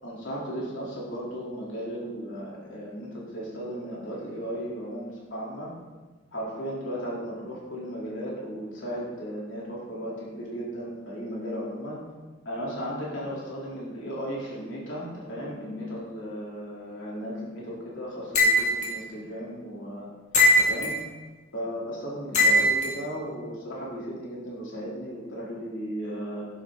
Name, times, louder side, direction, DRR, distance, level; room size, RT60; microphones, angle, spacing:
voice 1, 0.0-5.7 6.3-12.0 12.4-20.1 20.6-21.0 21.5-26.5, equal, 65° left, -6 dB, 3.4 m, -35 dB
sound 1, 18.3-18.9 20.3-21.0 22.3-22.9, left 1 dB, 35° left, 1.9 m, -20 dB
11.5 x 9.8 x 3.9 m, 1.3 s
head